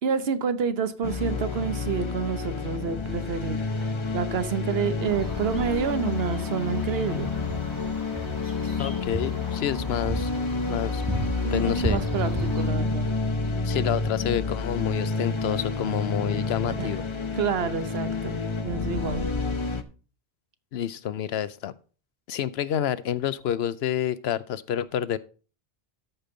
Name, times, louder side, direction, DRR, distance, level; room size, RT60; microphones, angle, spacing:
voice 1, 0.0-3.6 4.1-7.3 11.4-13.1 16.8-16.9 17.4-19.3, right 6 dB, 75° right, 1.1 m, -28 dB
sound 1, 1.0-19.8, left 4 dB, 30° left, 0.7 m, -29 dB
sound 2, 5.0-12.7, right 2 dB, 20° right, 1.4 m, -35 dB
voice 2, 8.8-10.3 10.7-11.0 11.5-12.0 13.6-17.0 20.7-21.7 22.3-25.2, left 10 dB, 80° left, 0.9 m, -28 dB
13.5 x 5.3 x 3.9 m
omnidirectional pair, 1.1 m